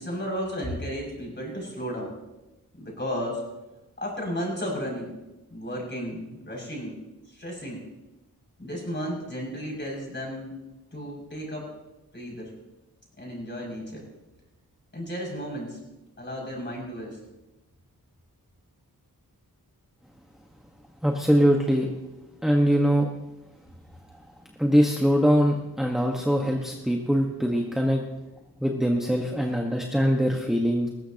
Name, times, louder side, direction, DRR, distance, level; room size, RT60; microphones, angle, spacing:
voice 1, 0.0-2.1 2.7-3.4 4.0-5.1 5.5-7.0 7.2-7.8 8.6-10.6 10.9-11.7 12.1-12.5 13.2-14.0 14.9-15.8 16.2-17.2, equal, 30° left, -2 dB, 6.5 m, -33 dB
voice 2, 21.0-21.9 22.4-23.1 24.1-24.2 24.6-28.0 28.6-30.9, equal, ahead, 0 dB, 1.3 m, -22 dB
19.5 x 16.0 x 2.9 m, 1.0 s
wide cardioid pair, 80°, 37 cm